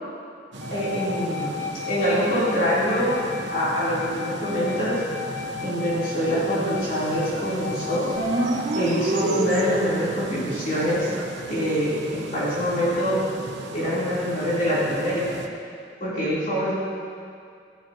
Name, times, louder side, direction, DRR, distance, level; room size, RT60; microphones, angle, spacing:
sound 1, 0.5-15.5, right 2 dB, 75° right, 1.0 m, -37 dB
sound 2, 0.6-8.9, left 6 dB, 70° left, 1.0 m, -35 dB
voice 1, 0.7-3.2 3.5-5.0 5.6-8.1 8.8-11.1 11.5-13.2 13.7-15.3 16.0-16.7, equal, 45° left, -9 dB, 3.4 m, -25 dB
sound 3, 8.2-10.1, right 1 dB, 55° right, 1.8 m, -26 dB
15.5 x 13.0 x 2.9 m, 2.3 s
head